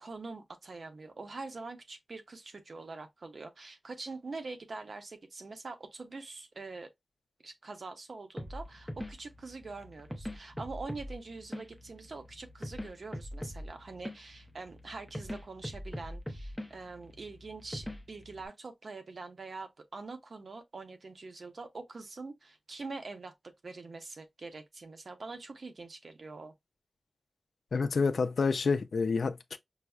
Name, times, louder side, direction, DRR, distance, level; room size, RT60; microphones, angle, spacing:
voice 1, 0.0-6.9 7.4-23.3 23.6-26.5, right 3 dB, 60° right, 0.7 m, -44 dB
sound 1, 8.4-18.5, equal, ahead, 0.6 m, -43 dB
voice 2, 27.7-29.6, left 4 dB, 75° left, 0.4 m, -28 dB
5.5 x 2.0 x 2.3 m
wide cardioid pair, 115°, 0 cm